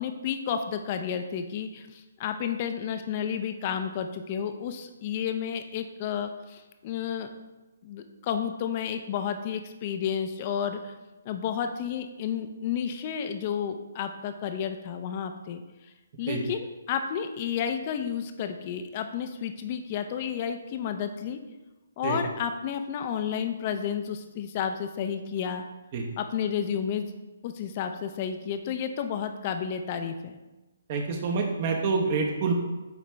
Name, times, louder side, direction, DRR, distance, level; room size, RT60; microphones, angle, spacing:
voice 1, 0.0-7.3 7.8-10.9 11.2-15.6 16.2-21.4 22.0-25.6 26.2-27.1 27.4-30.4, left 8 dB, 35° left, 7 dB, 0.5 m, -31 dB
voice 2, 30.9-32.5, right 4 dB, 40° right, 2 dB, 1.0 m, -27 dB
9.0 x 3.3 x 3.2 m, 1.1 s
hypercardioid pair, 145°, 0 cm